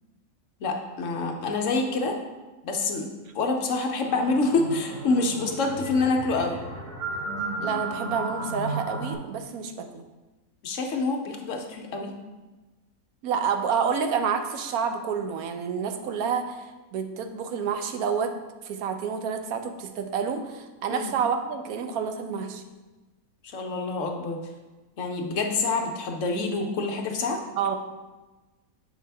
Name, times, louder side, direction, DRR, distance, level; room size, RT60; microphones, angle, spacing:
voice 1, 0.6-2.1 2.6-3.1 3.3-6.6 10.6-12.1 20.9-21.1 23.4-24.4 25.0-27.4, left 3 dB, 65° left, 3 dB, 1.0 m, -26 dB
sound 1, 4.0-9.2, right 2 dB, 60° right, 1.9 m, -34 dB
voice 2, 7.6-10.0 13.2-18.3 18.6-22.6 27.6-27.8, right 6 dB, 85° right, 7 dB, 1.1 m, -29 dB
6.9 x 4.7 x 3.3 m, 1.2 s
omnidirectional pair, 1.5 m